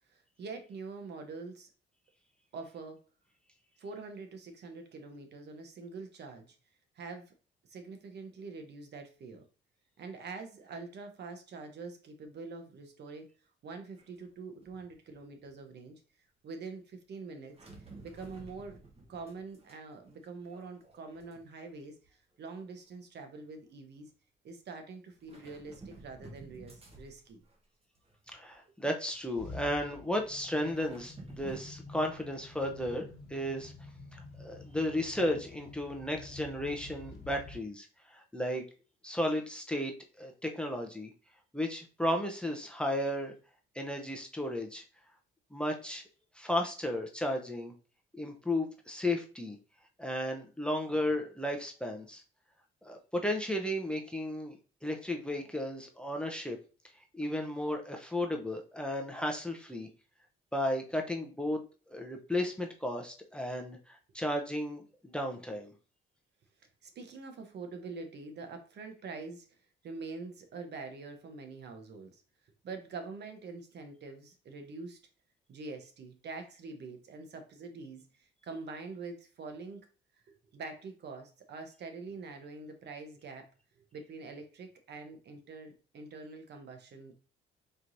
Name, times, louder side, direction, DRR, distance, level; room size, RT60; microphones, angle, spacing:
voice 1, 0.1-1.7 2.5-3.0 3.8-6.6 7.0-7.3 7.7-9.4 10.0-13.3 13.6-16.0 16.4-17.6 18.0-18.8 19.1-24.1 24.4-27.4 66.8-69.6 69.8-72.2 72.6-75.0 75.5-79.9 80.3-83.5 83.8-87.1, right 4 dB, 60° right, 5 dB, 0.9 m, -45 dB
sound 1, 14.0-14.3 14.6-15.5 17.5-19.8 20.0-21.8 22.0-22.4 23.4-23.5 25.1-27.6 27.9-28.7 29.1-29.2 30.5-31.6, right 2 dB, 30° right, 1.2 m, -52 dB
voice 2, 28.3-33.7 34.1-38.6 39.0-39.9 40.2-41.1 41.5-43.3 43.7-44.8 45.5-46.0 46.4-47.7 48.1-49.6 50.0-52.2 52.8-56.6 57.2-59.9 60.5-61.6 61.9-65.7, left 1 dB, 5° left, 3 dB, 0.6 m, -34 dB
sound 2, 29.1-37.6, left 2 dB, 60° left, 1.5 m, -49 dB
4.4 x 3.1 x 2.6 m, 0.35 s
cardioid pair, 90°, 20 cm